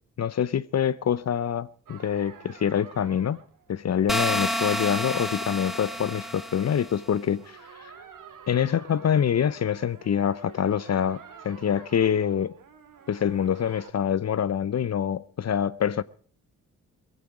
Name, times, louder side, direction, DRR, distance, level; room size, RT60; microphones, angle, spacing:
voice 1, 0.2-3.4 3.7-7.9 8.5-12.5 13.1-16.0, left 8 dB, 45° left, 0.7 m, -25 dB
sound 1, 1.9-13.9, right 6 dB, 60° right, 2.1 m, -49 dB
sound 2, 4.1-7.0, equal, ahead, 1.8 m, -29 dB
18.0 x 15.5 x 4.8 m
supercardioid pair, 55°, 35 cm